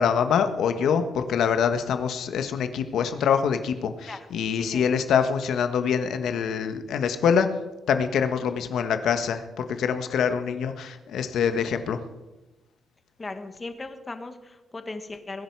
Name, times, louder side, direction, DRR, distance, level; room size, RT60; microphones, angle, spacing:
voice 1, 0.0-7.5 7.9-12.0, left 7 dB, 75° left, 8 dB, 1.4 m, -25 dB
voice 2, 4.6-4.9 13.2-15.4, left 3 dB, 20° left, 8 dB, 1.5 m, -37 dB
21.5 x 10.5 x 4.8 m, 1.1 s
cardioid pair, 120°, 0 cm